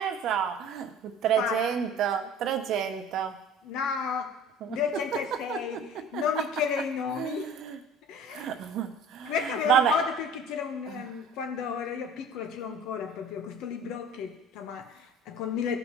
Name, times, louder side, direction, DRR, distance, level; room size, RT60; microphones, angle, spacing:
voice 1, 0.0-3.4 4.6-4.8 5.5-5.6 6.1-6.2 7.2-7.8 8.3-9.9 10.9-11.0, right 9 dB, 60° right, 6 dB, 1.0 m, -29 dB
voice 2, 1.4-1.7 3.6-4.3 4.7-7.5 8.1-8.5 9.2-15.8, left 7 dB, 70° left, 4 dB, 1.2 m, -32 dB
15.5 x 5.3 x 3.2 m, 0.92 s
supercardioid pair, 95°, 0 cm